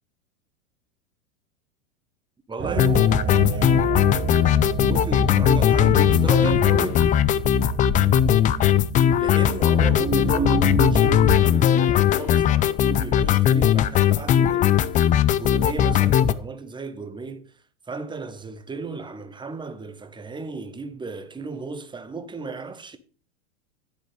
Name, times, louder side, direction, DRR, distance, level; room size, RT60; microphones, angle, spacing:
voice 1, 2.5-3.9 4.8-7.1 9.1-15.0 15.3-17.5 17.9-23.0, right 4 dB, 10° right, 1.1 m, -35 dB
sound 1, 2.6-11.4, right 5 dB, 30° right, 2.0 m, -29 dB
sound 2, 2.8-16.3, left 10 dB, 20° left, 0.4 m, -19 dB
11.0 x 7.9 x 3.3 m
hypercardioid pair, 95°, 38 cm